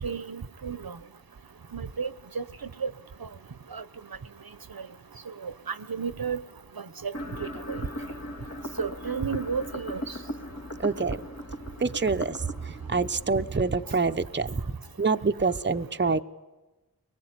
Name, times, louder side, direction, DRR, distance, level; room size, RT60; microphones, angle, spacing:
voice 1, 0.0-1.0 1.7-2.4 2.8-2.9 3.7-3.8 5.4-6.4 6.8-7.1 7.4-7.8 8.8-10.0, right 6 dB, 70° right, 15 dB, 1.1 m, -32 dB
sound 1, 7.1-14.2, equal, 45° left, 2.2 m, -39 dB
voice 2, 10.8-11.3 11.8-16.2, right 4 dB, 30° right, 8 dB, 0.9 m, -26 dB
24.5 x 21.5 x 9.7 m, 1.1 s
wide cardioid pair, 70°, 37 cm